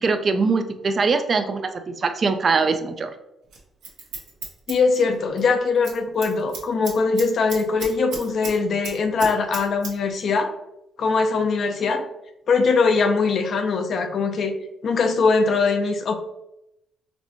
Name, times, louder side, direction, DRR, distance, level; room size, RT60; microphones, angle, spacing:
voice 1, 0.0-3.1, right 4 dB, 45° right, 8 dB, 0.4 m, -22 dB
Scissors, 3.5-5.5 5.7-6.0 6.2-8.5 8.8-9.9 10.2-10.3, right 4 dB, 80° right, 0.9 m, -34 dB
voice 2, 4.7-10.5 11.0-12.0 12.5-14.5 14.8-16.2, left 4 dB, 55° left, 7 dB, 0.5 m, -21 dB
4.0 x 2.2 x 2.9 m, 0.84 s
cardioid pair, 90°, 0 cm